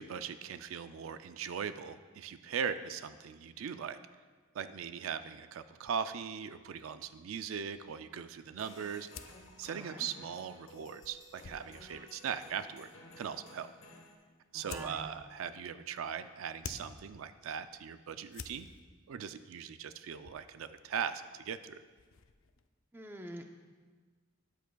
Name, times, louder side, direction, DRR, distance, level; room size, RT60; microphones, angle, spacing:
voice 1, 0.0-4.0 4.5-9.1 9.6-12.9 13.2-13.7 14.5-18.7 19.1-21.8, right 7 dB, 85° right, 11 dB, 0.4 m, -40 dB
sound 1, 5.8-22.7, left 6 dB, 90° left, 0.5 m, -54 dB
sound 2, 8.6-14.1, left 1 dB, 75° left, 1.2 m, -55 dB
voice 2, 9.7-10.1 14.5-15.0 22.9-23.5, right 1 dB, 10° right, 4 dB, 0.5 m, -46 dB
13.0 x 9.2 x 2.3 m, 1.5 s
head